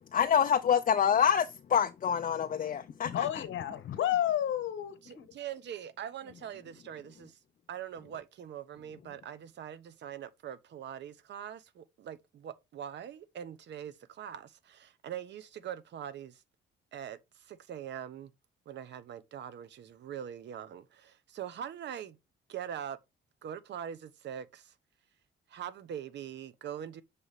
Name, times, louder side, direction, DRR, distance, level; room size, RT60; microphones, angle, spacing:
voice 1, 0.1-3.4, left 8 dB, 40° left, 0.6 m, -27 dB
voice 2, 3.0-5.3, left 11 dB, 75° left, 1.1 m, -31 dB
voice 3, 5.0-7.4 7.7-16.4 16.9-18.3 18.7-22.2 22.5-23.0 23.4-24.7 25.5-27.0, right 9 dB, 65° right, 0.8 m, -42 dB
6.9 x 3.4 x 4.0 m
cardioid pair, 90°, 20 cm